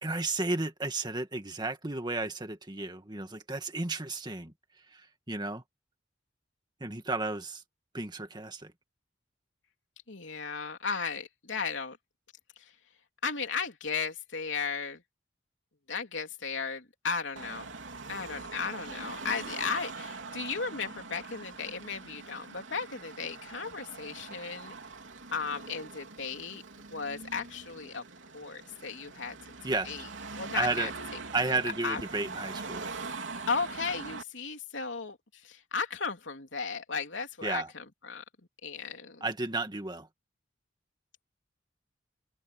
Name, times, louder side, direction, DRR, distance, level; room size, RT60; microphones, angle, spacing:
voice 1, 0.0-4.5 4.9-5.0 5.3-5.6 6.8-7.6 7.9-8.7 29.6-29.9 30.5-30.9 31.3-32.9 37.4-37.7 39.2-40.1, right 3 dB, 25° right, 2.0 m, -33 dB
voice 2, 10.1-12.0 12.6-12.7 13.2-15.0 15.9-17.7 18.1-24.8 25.3-26.6 26.9-28.0 28.3-29.4 29.8-30.1 30.4-31.2 31.5-32.0 33.5-38.2 38.6-39.2, left 5 dB, 80° left, 3.3 m, -35 dB
Car passing by / Traffic noise roadway noise / Engine, 17.4-34.2, right 4 dB, 85° right, 3.4 m, -43 dB
head